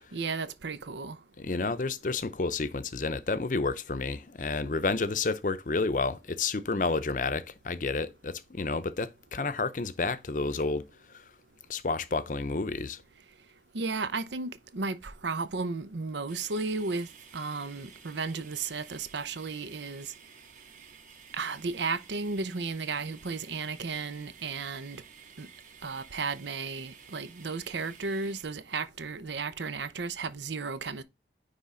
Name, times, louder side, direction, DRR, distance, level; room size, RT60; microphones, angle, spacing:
voice 1, 0.1-1.2 13.7-17.1 17.3-20.1 21.3-25.0 25.4-25.5 25.8-31.0, right 4 dB, 90° right, 0.8 m, -34 dB
voice 2, 1.4-11.2 11.7-13.0, left 3 dB, 45° left, 0.6 m, -30 dB
sound 1, 16.3-28.4, right 6 dB, 45° right, 1.6 m, -53 dB
9.7 x 3.5 x 3.7 m
head